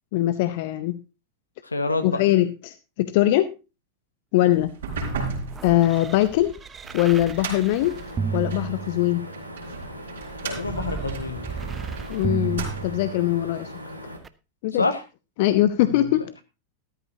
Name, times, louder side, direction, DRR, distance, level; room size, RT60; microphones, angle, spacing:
voice 1, 0.1-1.0 2.0-3.5 4.3-4.7 5.6-6.5 6.9-7.9 8.3-9.2 12.1-13.7 14.6-14.8 15.4-16.3, left 14 dB, 50° left, 13 dB, 0.7 m, -21 dB
voice 2, 1.6-2.2 10.4-11.4 14.8-15.0 15.8-16.4, left 3 dB, 80° left, 9 dB, 1.5 m, -27 dB
sound 1, 4.5-9.4 10.2-13.5 14.2-14.3, right 6 dB, 20° right, 0.7 m, -34 dB
sound 2, 4.7-8.7 9.3-12.0 12.4-13.2, right 4 dB, 60° right, 4.3 m, -35 dB
sound 3, 7.8-14.2, equal, 90° right, 2.2 m, -39 dB
14.0 x 13.0 x 2.8 m, 0.29 s
figure-of-eight pair, 90°, 0 cm